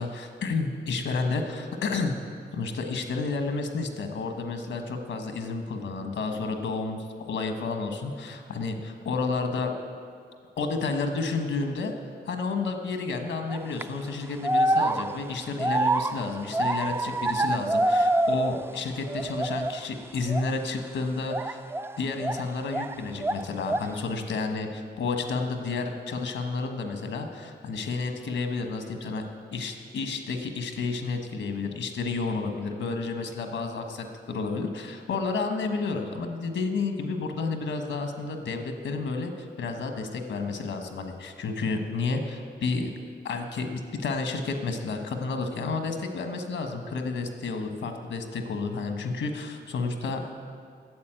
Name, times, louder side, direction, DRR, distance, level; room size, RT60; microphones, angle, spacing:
voice 1, 0.0-2.2 2.5-7.0 7.3-9.7 10.6-11.9 12.3-21.6 22.0-29.2 29.5-42.9 43.2-50.3, left 4 dB, 80° left, 5 dB, 1.3 m, -31 dB
sound 1, 13.5-13.8 14.4-18.8 19.1-19.8 20.3-20.5 21.3-22.9 23.2-24.0, right 2 dB, 10° right, 0.4 m, -26 dB
9.5 x 7.4 x 8.8 m, 2.2 s
supercardioid pair, 45°, 20 cm